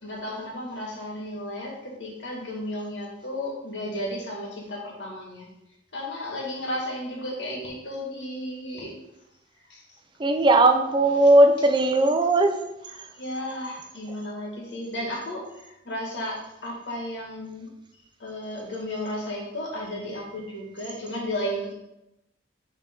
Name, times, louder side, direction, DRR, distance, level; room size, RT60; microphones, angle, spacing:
voice 1, 0.0-5.5 5.9-9.0 9.7-9.8 13.1-21.7, left 1 dB, 80° left, -3 dB, 2.1 m, -34 dB
voice 2, 10.2-12.6, right 2 dB, 25° right, 6 dB, 0.5 m, -18 dB
7.3 x 3.5 x 3.8 m, 0.87 s
head